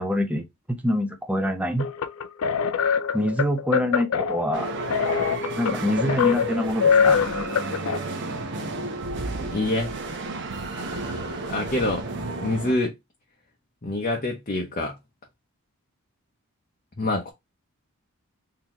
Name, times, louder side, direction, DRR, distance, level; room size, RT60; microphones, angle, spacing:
voice 1, 0.0-1.9 3.1-4.7 5.5-7.2, equal, 5° right, 0.6 m, -25 dB
sound 1, 1.8-8.0, left 6 dB, 65° left, 0.4 m, -24 dB
sound 2, 4.5-12.7, right 2 dB, 55° right, 0.8 m, -32 dB
voice 2, 9.5-9.9 11.5-12.1 12.4-12.9 13.8-14.9 17.0-17.3, left 2 dB, 40° left, 0.7 m, -26 dB
3.9 x 2.8 x 3.0 m
head